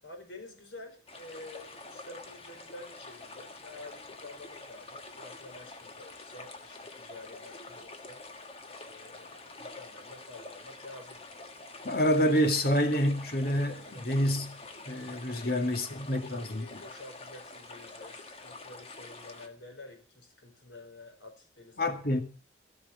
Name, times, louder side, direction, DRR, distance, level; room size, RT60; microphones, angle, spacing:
voice 1, 0.0-8.2 8.8-11.2 13.9-14.1 15.3-21.9, left 2 dB, 80° left, 4.8 m, -49 dB
sound 1, 1.1-19.5, left 3 dB, 30° left, 1.6 m, -47 dB
voice 2, 11.8-14.6 14.9-16.8 21.8-22.2, equal, 55° left, 2.1 m, -27 dB
16.5 x 6.7 x 7.2 m
head